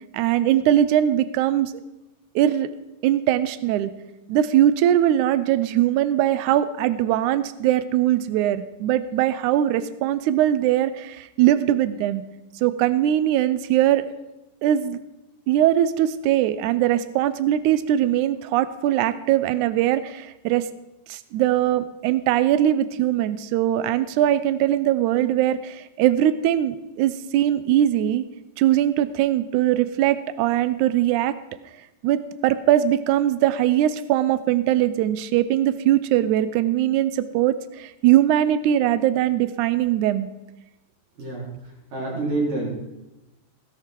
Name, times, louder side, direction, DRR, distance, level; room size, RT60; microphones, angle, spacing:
voice 1, 0.1-1.7 2.4-2.7 3.0-3.9 4.3-12.2 12.6-14.1 14.6-15.0 15.5-20.7 21.1-28.2 28.6-31.4 32.0-40.3, right 12 dB, 80° right, 14 dB, 1.8 m, -21 dB
voice 2, 41.9-42.7, right 2 dB, 65° right, -5 dB, 5.9 m, -26 dB
16.5 x 11.0 x 4.6 m, 0.96 s
omnidirectional pair, 4.2 m